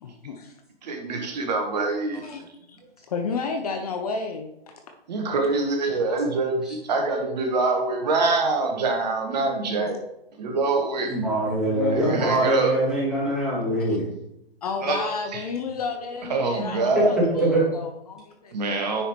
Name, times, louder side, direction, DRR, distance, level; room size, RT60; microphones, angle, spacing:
voice 1, 0.0-0.5 2.2-2.8 3.1-4.8 11.6-12.4 13.8-14.0 14.6-18.5, left 4 dB, 40° left, 5 dB, 0.7 m, -32 dB
voice 2, 0.8-2.2 5.1-10.0 10.4-11.1 11.9-12.7 14.8-15.0 15.3-15.4 16.3-17.2 18.5-19.0, right 3 dB, 45° right, 3 dB, 1.3 m, -25 dB
voice 3, 11.1-14.1 17.4-17.7, right 2 dB, ahead, -8 dB, 2.4 m, -23 dB
9.7 x 5.0 x 3.1 m, 0.83 s
figure-of-eight pair, 135°, 31 cm